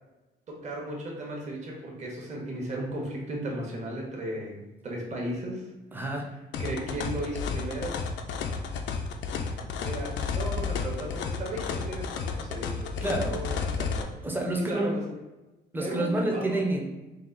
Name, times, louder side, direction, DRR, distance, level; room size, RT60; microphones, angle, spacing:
voice 1, 0.5-5.7 6.6-8.0 9.8-14.1 14.6-15.0 15.8-16.5, right 1 dB, 40° right, -2 dB, 1.1 m, -35 dB
voice 2, 5.9-6.4 13.0-13.4 14.2-14.9 15.7-16.9, right 1 dB, 10° right, 1 dB, 0.6 m, -28 dB
sound 1, 6.5-14.0, left 5 dB, 85° left, 0.5 m, -32 dB
4.0 x 2.4 x 3.8 m, 1.1 s
cardioid pair, 145°, 18 cm